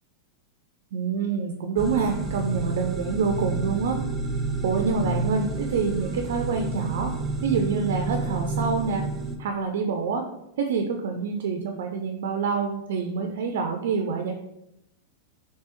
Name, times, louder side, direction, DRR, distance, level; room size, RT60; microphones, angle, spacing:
voice 1, 0.9-4.0 4.6-7.1 7.4-9.0 9.4-10.3 10.6-14.3, right 5 dB, 70° right, 4 dB, 0.4 m, -26 dB
sound 1, 1.8-9.3, right 3 dB, 20° right, 0.5 m, -29 dB
3.3 x 2.9 x 3.0 m, 0.85 s
hypercardioid pair, 105°, 0 cm